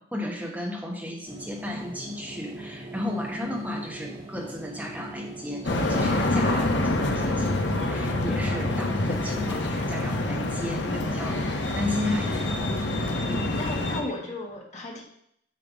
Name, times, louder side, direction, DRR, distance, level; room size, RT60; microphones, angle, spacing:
voice 1, 0.0-12.6 13.3-13.6, left 1 dB, 10° right, -1 dB, 1.2 m, -34 dB
sound 1, 1.2-9.4, right 1 dB, 30° right, 1.1 m, -41 dB
sound 2, 5.6-14.0, left 2 dB, 70° left, 0.9 m, -26 dB
voice 2, 13.2-15.0, left 1 dB, 40° left, 0 dB, 1.5 m, -35 dB
8.9 x 3.4 x 5.1 m, 0.69 s
head